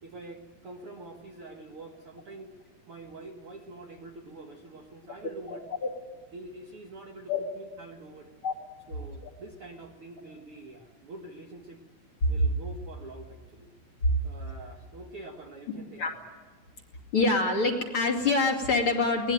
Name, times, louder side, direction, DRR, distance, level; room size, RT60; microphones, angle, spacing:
voice 1, 0.0-2.5 2.9-5.6 6.3-8.3 8.9-11.8 12.3-13.7 14.2-16.0, right 2 dB, 90° right, 2 dB, 1.2 m, -45 dB
voice 2, 5.5-5.9 7.3-7.4 8.4-8.5 9.2-9.3 12.2-12.3 14.0-14.1 16.0-16.1 17.1-19.3, left 3 dB, 35° left, 2 dB, 2.8 m, -25 dB
24.0 x 19.0 x 8.9 m, 1.5 s
omnidirectional pair, 5.0 m